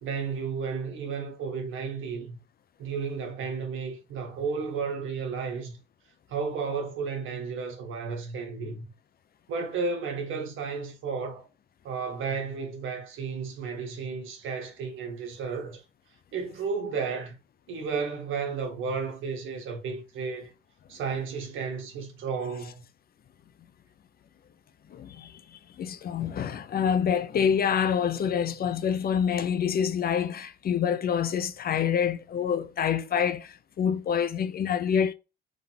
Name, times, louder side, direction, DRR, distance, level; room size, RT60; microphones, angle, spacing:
voice 1, 0.0-2.4 2.8-5.8 6.3-8.8 9.5-11.4 11.8-15.8 16.3-17.3 17.7-20.5 20.9-22.8, right 5 dB, 80° right, 1.5 m, -33 dB
voice 2, 24.9-35.1, left 8 dB, 50° left, 0.6 m, -27 dB
3.8 x 3.6 x 2.9 m
cardioid pair, 90°, 20 cm